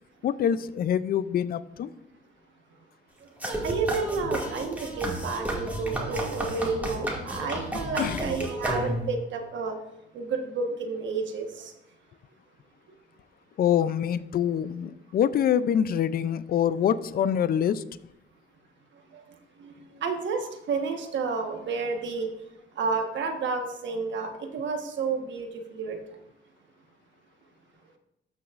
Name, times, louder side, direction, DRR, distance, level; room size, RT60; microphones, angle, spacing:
voice 1, 0.2-1.9 8.0-8.3 13.6-17.8, left 9 dB, 50° left, 16 dB, 0.4 m, -25 dB
sound 1, 3.4-9.2, right 1 dB, 10° right, 2.1 m, -32 dB
voice 2, 3.6-9.7 10.1-11.7 19.1-19.2 19.6-22.3 22.8-26.0, right 4 dB, 70° right, 4 dB, 1.3 m, -31 dB
12.5 x 6.2 x 2.5 m, 0.86 s
cardioid pair, 90°, 20 cm